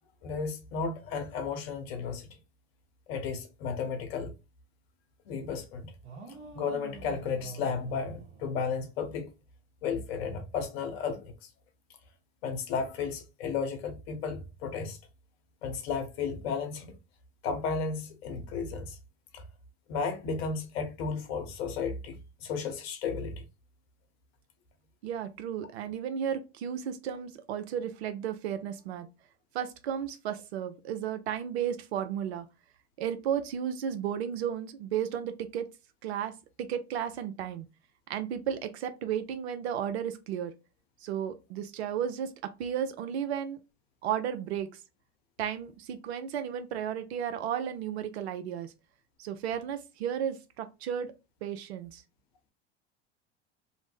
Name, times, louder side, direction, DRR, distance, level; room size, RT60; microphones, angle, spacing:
voice 1, 0.2-2.4 3.1-4.3 5.3-5.9 6.5-9.3 9.8-11.3 12.4-15.0 15.6-16.9 17.4-19.0 19.3-19.4 19.9-23.5, left 5 dB, 65° left, 0.9 m, -33 dB
sound 1, 6.0-9.2, right 4 dB, 50° right, 1.1 m, -46 dB
voice 2, 25.0-29.1 29.5-32.5 33.0-35.7 36.0-36.3 36.6-37.7 38.1-40.5 41.0-43.6 44.0-44.7 45.4-48.7 49.2-51.1 51.4-52.0, right 9 dB, 70° right, 0.5 m, -33 dB
2.5 x 2.1 x 3.2 m
hypercardioid pair, 80°, 33 cm